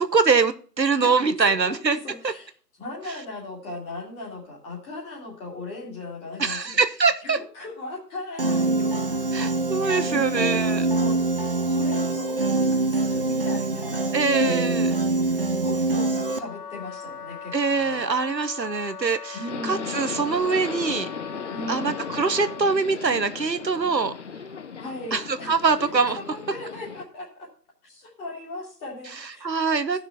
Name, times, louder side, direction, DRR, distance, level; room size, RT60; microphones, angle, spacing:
voice 1, 0.0-2.0 2.2-2.3 6.4-7.4 9.3-10.9 14.1-15.0 17.5-21.1 21.7-24.1 25.1-26.2 29.4-30.0, right 4 dB, 85° right, 11 dB, 1.1 m, -23 dB
voice 2, 1.7-2.5 2.8-6.6 7.2-9.7 10.0-11.2 11.6-14.1 15.6-18.1 19.3-20.0 21.5-22.0 24.8-25.9 26.2-27.5 27.8-29.8, left 2 dB, 10° left, -2 dB, 2.2 m, -38 dB
Piano, 8.4-16.4, right 2 dB, 35° right, 0.5 m, -24 dB
Wind instrument woodwind instrument, 16.2-22.7, left 6 dB, 65° left, 1.2 m, -39 dB
Subway metro underground, 19.5-27.0, left 6 dB, 45° left, 0.9 m, -36 dB
14.0 x 6.1 x 4.0 m, 0.42 s
figure-of-eight pair, 140°, 49 cm